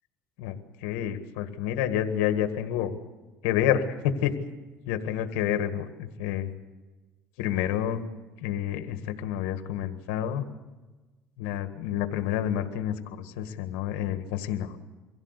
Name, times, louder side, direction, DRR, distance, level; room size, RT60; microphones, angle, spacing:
voice 1, 0.8-2.9 3.4-4.4 4.9-6.5 7.4-8.0 8.4-10.5 11.4-14.7, left 10 dB, 90° left, 8 dB, 1.7 m, -29 dB
24.0 x 16.0 x 8.3 m, 1.2 s
cardioid pair, 120°, 6 cm